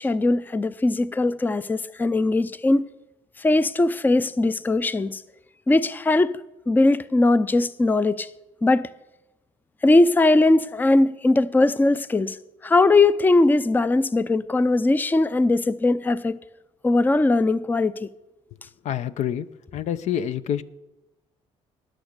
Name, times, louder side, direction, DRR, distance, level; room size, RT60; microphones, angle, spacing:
voice 1, 0.0-2.8 3.4-5.2 5.7-6.4 6.7-8.3 8.6-8.9 9.8-12.4 12.6-16.4 16.8-18.1, left 2 dB, 15° left, 0.5 m, -20 dB
voice 2, 18.8-19.5 19.7-20.6, left 10 dB, 65° left, 0.7 m, -27 dB
19.0 x 6.3 x 6.7 m
cardioid pair, 85°, 13 cm